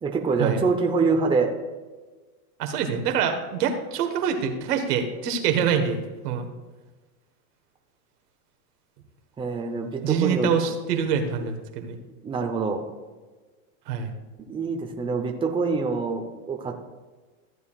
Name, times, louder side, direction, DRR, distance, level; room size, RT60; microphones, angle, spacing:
voice 1, 0.0-1.5 9.4-10.5 12.2-12.9 14.5-16.8, right 4 dB, 10° right, 2 dB, 0.8 m, -25 dB
voice 2, 2.6-6.5 10.0-12.0 13.9-14.1, right 7 dB, 80° right, 5 dB, 1.6 m, -25 dB
14.0 x 8.1 x 2.4 m, 1.3 s
supercardioid pair, 130°, 46 cm